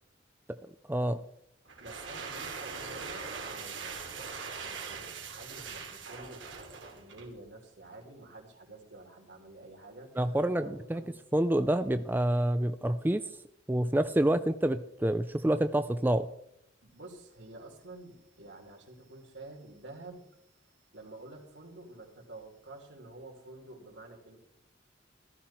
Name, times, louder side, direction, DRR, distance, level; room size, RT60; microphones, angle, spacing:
voice 1, 0.9-1.2 10.2-11.0 11.3-13.2 13.7-16.3, right 1 dB, 10° right, 10 dB, 0.4 m, -27 dB
sound 1, 1.7-7.4, right 5 dB, 85° right, 2.9 m, -41 dB
voice 2, 1.8-6.4 6.7-11.2 16.8-20.3 20.6-24.4, right 2 dB, 70° right, 1 dB, 3.5 m, -49 dB
14.5 x 13.5 x 4.4 m, 0.75 s
head